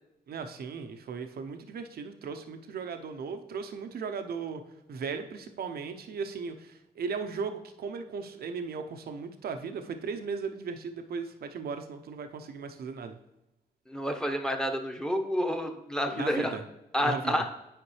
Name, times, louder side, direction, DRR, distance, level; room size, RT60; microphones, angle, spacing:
voice 1, 0.3-4.6 4.9-13.2 16.1-16.6 17.0-17.3, right 5 dB, 70° right, 7 dB, 0.7 m, -37 dB
voice 2, 13.9-16.5 16.9-17.4, equal, 5° left, 5 dB, 1.1 m, -29 dB
8.8 x 5.1 x 3.2 m, 0.91 s
cardioid pair, 70°, 17 cm